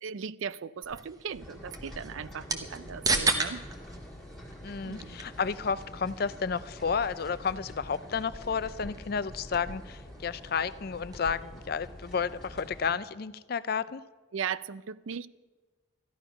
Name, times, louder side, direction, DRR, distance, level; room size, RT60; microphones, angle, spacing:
voice 1, 0.0-3.6 4.8-5.2 14.3-15.3, right 7 dB, 75° right, 18 dB, 0.4 m, -37 dB
sound 1, 0.8-11.5, right 3 dB, 20° right, 0.9 m, -37 dB
sound 2, 1.4-12.9, equal, 5° left, 1.9 m, -46 dB
voice 2, 4.6-14.0, left 6 dB, 45° left, 16 dB, 0.4 m, -32 dB
13.5 x 11.5 x 5.8 m, 1.3 s
head